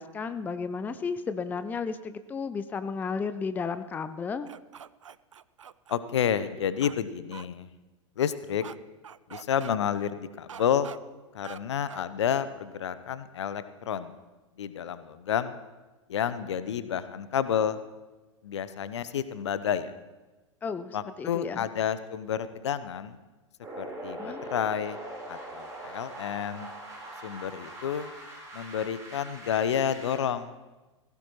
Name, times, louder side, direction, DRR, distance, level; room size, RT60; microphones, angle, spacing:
voice 1, 0.0-4.5 20.6-21.6 24.2-24.4, left 5 dB, 10° left, 12 dB, 0.5 m, -33 dB
sound 1, 4.5-6.0 6.8-7.0 7.3-7.4 8.6-8.7 9.0-9.8 10.5-11.0 11.4-11.6 11.9-12.0, right 8 dB, 75° right, 0.4 m, -44 dB
voice 2, 5.9-7.7 8.2-8.6 9.3-10.9 11.3-14.2 14.6-15.6 16.1-17.8 18.4-19.9 20.9-23.1 23.8-25.0 25.3-26.7 27.2-28.1 28.5-30.6, left 8 dB, 60° left, 14 dB, 0.8 m, -30 dB
sound 2, 23.6-30.2, right 1 dB, 20° right, 4.3 m, -42 dB
19.0 x 16.5 x 3.2 m, 1.1 s
figure-of-eight pair, 95°, 16 cm